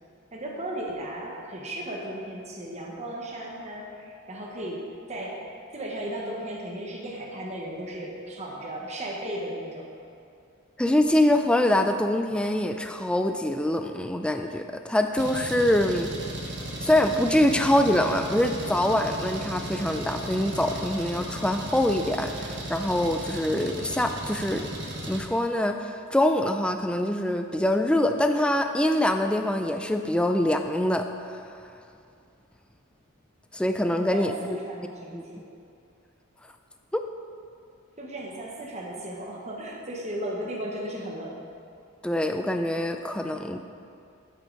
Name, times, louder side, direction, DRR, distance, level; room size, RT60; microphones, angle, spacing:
voice 1, 0.3-4.8 5.1-9.9 34.1-35.4 38.0-41.4, right 1 dB, 30° right, -3 dB, 1.2 m, -35 dB
voice 2, 10.8-16.1 16.8-24.7 25.0-31.1 33.5-34.3 35.1-35.2 36.9-37.0 42.0-43.6, left 1 dB, 5° left, 6 dB, 0.3 m, -24 dB
Engine, 15.2-25.2, right 1 dB, 55° right, 1.3 m, -35 dB
9.8 x 8.4 x 3.9 m, 2.5 s
head